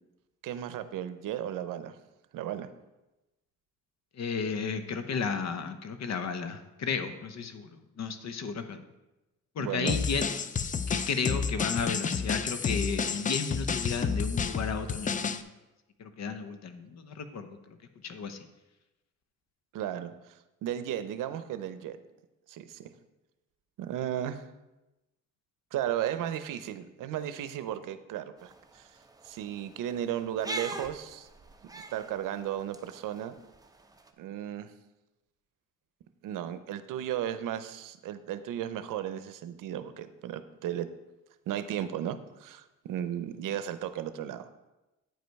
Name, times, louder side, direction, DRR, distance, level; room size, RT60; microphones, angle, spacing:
voice 1, 0.4-2.0 2.3-2.7 9.6-10.0 19.7-22.0 22.5-22.9 23.8-24.5 25.7-28.9 29.2-31.3 31.9-33.3 34.2-34.7 36.2-40.9 41.5-44.5, right 11 dB, 90° right, 12 dB, 0.6 m, -35 dB
voice 2, 4.2-8.8 9.6-10.4 10.9-15.5 16.0-17.6 18.0-18.4, left 5 dB, 55° left, 9 dB, 0.8 m, -33 dB
sound 1, 9.9-15.4, left 5 dB, 25° left, 0.4 m, -30 dB
sound 2, 28.4-34.1, right 2 dB, 10° right, 0.7 m, -44 dB
9.1 x 5.1 x 4.6 m, 1.0 s
cardioid pair, 100°, 31 cm